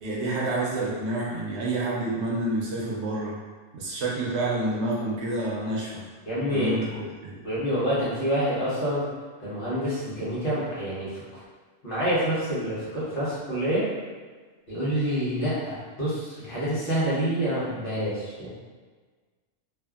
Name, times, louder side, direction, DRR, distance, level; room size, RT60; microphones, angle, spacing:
voice 1, 0.0-3.4 3.7-6.0 6.5-7.4, right 2 dB, 75° right, -4 dB, 0.9 m, -28 dB
voice 2, 6.3-6.9 7.4-9.0 9.4-11.2 11.8-13.8 14.7-18.5, equal, 50° left, -11 dB, 1.2 m, -27 dB
2.6 x 2.5 x 2.3 m, 1.4 s
omnidirectional pair, 1.2 m